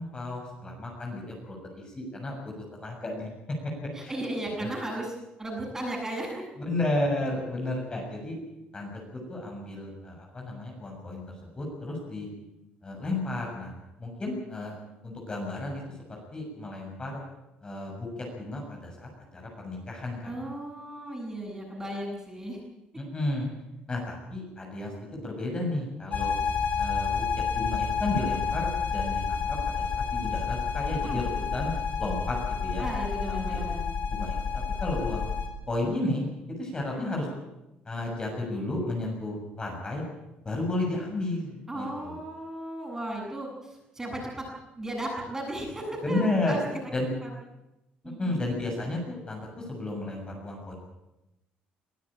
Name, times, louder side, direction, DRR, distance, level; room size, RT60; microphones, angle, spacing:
voice 1, 0.0-2.4 2.7-3.3 4.0-4.2 6.6-8.4 8.7-12.3 12.8-13.7 14.0-14.8 15.0-15.8 16.1-17.2 17.6-20.4 23.0-23.5 23.9-26.3 26.8-27.3 27.5-31.7 32.0-32.9 33.3-33.7 34.1-35.3 35.7-36.3 36.6-37.3 37.9-40.0 40.4-42.1 46.0-46.6 46.9-47.1 48.2-50.7, left 2 dB, 25° left, 0 dB, 7.0 m, -33 dB
voice 2, 3.9-5.1 5.4-6.5 20.2-22.6 31.0-31.2 32.8-33.9 41.7-44.5 44.8-46.6 47.2-47.3 48.0-48.5, right 1 dB, 15° right, 0 dB, 7.9 m, -35 dB
sound 1, 26.1-35.5, left 6 dB, 50° left, 3.8 m, -29 dB
23.0 x 13.0 x 8.9 m, 0.93 s
cardioid pair, 105°, 3 cm